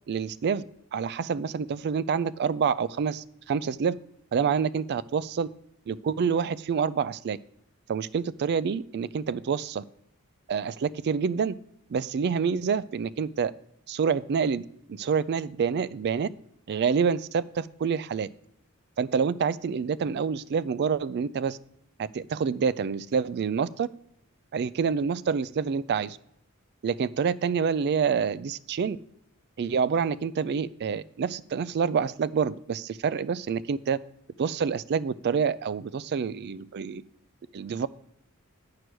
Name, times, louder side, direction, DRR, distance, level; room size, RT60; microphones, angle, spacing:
voice 1, 0.1-0.6 0.9-3.9 4.3-5.5 5.9-7.4 7.9-9.8 10.5-11.6 11.9-13.5 13.9-16.3 16.7-18.3 19.0-21.6 22.0-23.9 24.5-26.2 26.8-29.0 29.6-34.0 34.4-37.0 37.5-37.9, right 6 dB, 50° right, 17 dB, 0.3 m, -27 dB
9.4 x 4.8 x 6.1 m, 0.78 s
head